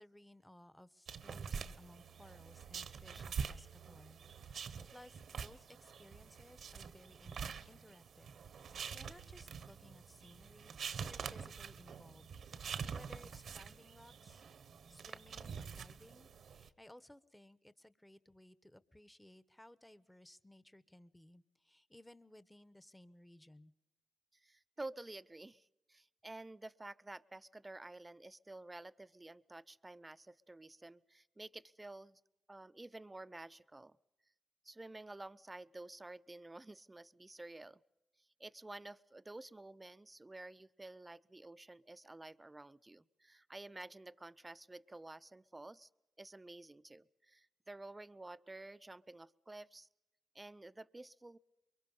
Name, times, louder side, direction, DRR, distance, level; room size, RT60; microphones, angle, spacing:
voice 1, 0.0-8.4 8.7-10.8 11.0-12.3 12.6-14.4 14.9-23.7, left 1 dB, 10° left, 15 dB, 1.2 m, -60 dB
sound 1, 1.1-16.7, right 6 dB, 70° right, 1.1 m, -46 dB
voice 2, 24.3-32.2 32.5-34.0 34.6-37.8 38.2-45.9 46.2-49.9 50.3-51.4, right 2 dB, 20° right, 15 dB, 0.7 m, -51 dB
23.5 x 23.5 x 5.5 m, 0.94 s
supercardioid pair, 60°, 0 cm